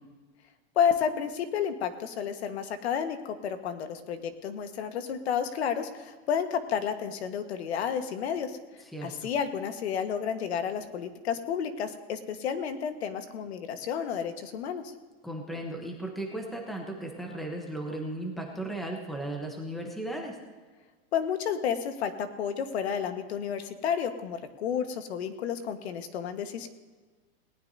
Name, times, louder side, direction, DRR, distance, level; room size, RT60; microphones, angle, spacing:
voice 1, 0.7-8.6 9.0-14.8 21.1-26.7, left 7 dB, 75° left, 8 dB, 1.5 m, -31 dB
voice 2, 8.9-9.3 15.2-20.4, right 1 dB, ahead, 1 dB, 0.9 m, -36 dB
19.0 x 18.5 x 2.7 m, 1.4 s
supercardioid pair, 180°, 33 cm